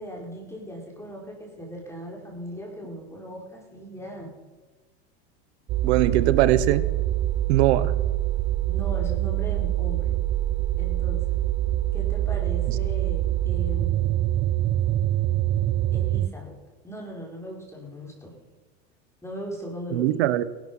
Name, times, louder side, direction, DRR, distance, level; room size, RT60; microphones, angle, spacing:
voice 1, 0.0-4.3 8.7-10.2 10.8-11.4 11.9-14.5 15.9-18.4 19.2-20.2, equal, 10° left, -1 dB, 4.6 m, -38 dB
sound 1, 5.7-16.3, right 14 dB, 35° right, 0.5 m, -25 dB
voice 2, 5.8-6.9 7.5-7.9 19.9-20.4, right 13 dB, 75° right, 15 dB, 1.2 m, -21 dB
18.0 x 12.0 x 5.6 m, 1.3 s
supercardioid pair, 115°, 33 cm